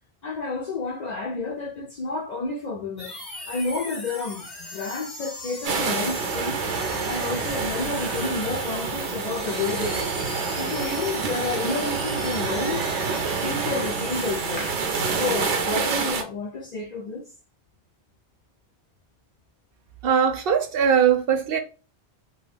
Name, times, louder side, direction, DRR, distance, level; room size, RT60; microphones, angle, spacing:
voice 1, 0.2-3.2 3.5-6.6 7.0-10.1 10.5-12.9 13.4-14.8 15.1-17.3, left 3 dB, 55° left, 0.5 m, -30 dB
sound 1, 3.0-15.6, left 1 dB, 25° left, 0.9 m, -39 dB
sound 2, 5.6-16.2, right 5 dB, 90° right, 1.0 m, -27 dB
voice 2, 20.0-21.6, right 7 dB, 65° right, 0.7 m, -20 dB
2.5 x 2.3 x 3.2 m
omnidirectional pair, 1.1 m